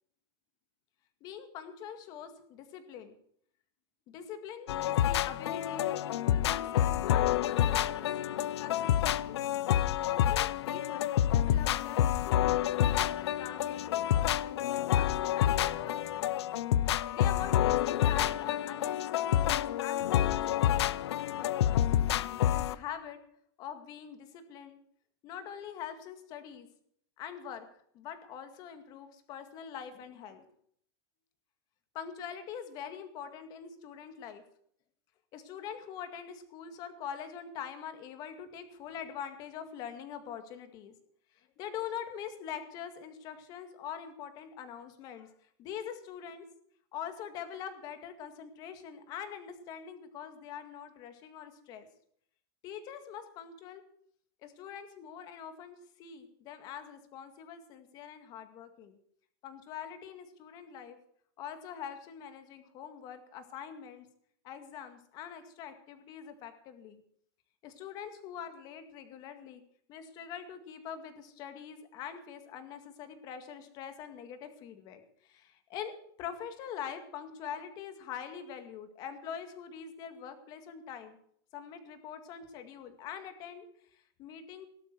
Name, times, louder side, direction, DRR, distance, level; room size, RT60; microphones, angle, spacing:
voice 1, 1.2-3.1 4.1-8.1 8.6-9.4 10.0-16.4 17.1-21.8 22.5-23.2 23.6-24.8 25.2-26.7 27.2-27.7 27.9-30.5 31.9-34.4 35.3-40.9 41.6-45.3 45.6-46.5 46.9-51.9 52.6-53.8 54.4-59.0 59.4-61.0 61.4-64.1 64.4-67.0 67.6-69.6 69.9-81.2 81.5-83.7 83.9-84.7, left 8 dB, 30° left, 8 dB, 2.1 m, -44 dB
sound 1, 4.7-22.7, left 11 dB, 90° left, 0.7 m, -28 dB
17.5 x 12.0 x 4.7 m, 0.65 s
supercardioid pair, 175°, 13 cm